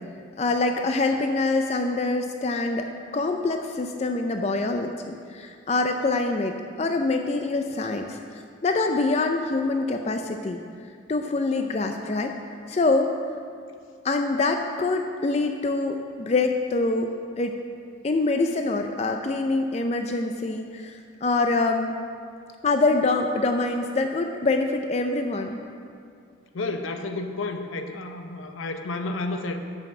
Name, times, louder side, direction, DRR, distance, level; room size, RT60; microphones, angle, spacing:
voice 1, 0.4-2.9 3.1-10.6 11.1-12.3 12.7-13.1 14.0-17.1 17.4-17.6 18.0-22.0 22.6-25.6, left 3 dB, 35° left, 5 dB, 0.4 m, -25 dB
voice 2, 26.5-29.6, left 2 dB, 80° left, 6 dB, 0.7 m, -31 dB
6.8 x 6.2 x 7.2 m, 2.4 s
head